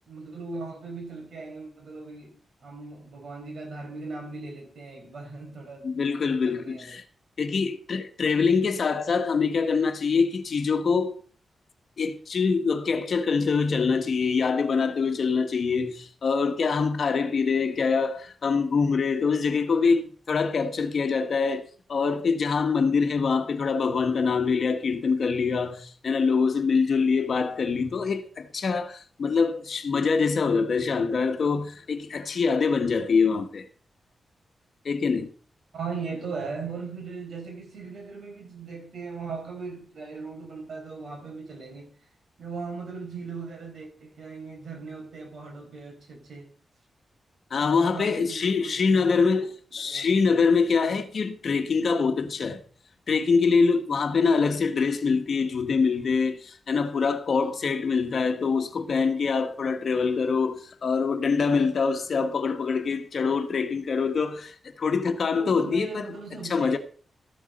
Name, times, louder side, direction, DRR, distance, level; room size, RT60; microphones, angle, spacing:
voice 1, 0.1-7.0 9.6-9.8 35.7-41.9 42.4-46.5 47.8-50.4 65.3-66.8, right 4 dB, 70° right, 5.0 m, -39 dB
voice 2, 5.8-7.0 7.4-11.2 12.0-33.6 34.8-35.3 47.5-52.6 53.1-66.1 66.4-66.8, left 5 dB, 60° left, 1.3 m, -24 dB
13.5 x 7.2 x 5.3 m
wide cardioid pair, 105°, 0 cm